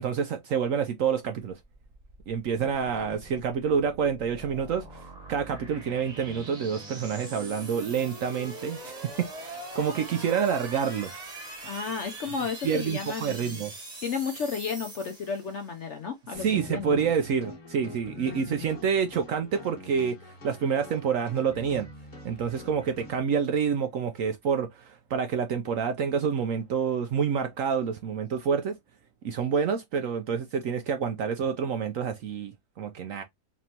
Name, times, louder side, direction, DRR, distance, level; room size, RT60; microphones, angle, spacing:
voice 1, 0.0-1.6 2.3-11.1 12.6-13.7 16.3-21.9 22.2-28.7 29.2-33.2, right 7 dB, 70° right, 0.8 m, -28 dB
sound 1, 1.6-15.9, right 2 dB, 30° right, 1.1 m, -43 dB
voice 2, 11.6-13.6 14.0-17.0 18.1-18.8, left 6 dB, 65° left, 0.7 m, -33 dB
sound 2, 16.3-23.2, left 2 dB, 30° left, 1.3 m, -45 dB
4.3 x 3.1 x 2.8 m
omnidirectional pair, 1.8 m